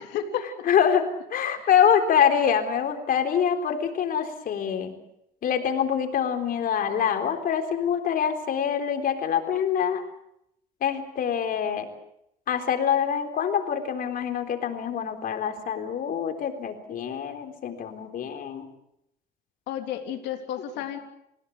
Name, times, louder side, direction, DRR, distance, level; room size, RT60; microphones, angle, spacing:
voice 1, 0.6-1.0 1.3-4.9 5.4-10.0 10.8-11.9 12.5-18.7 20.8-20.9, left 8 dB, 60° left, 6 dB, 3.8 m, -25 dB
voice 2, 19.7-21.0, left 10 dB, 85° left, 4 dB, 3.4 m, -31 dB
29.0 x 16.5 x 8.3 m, 0.79 s
cardioid pair, 110°, 17 cm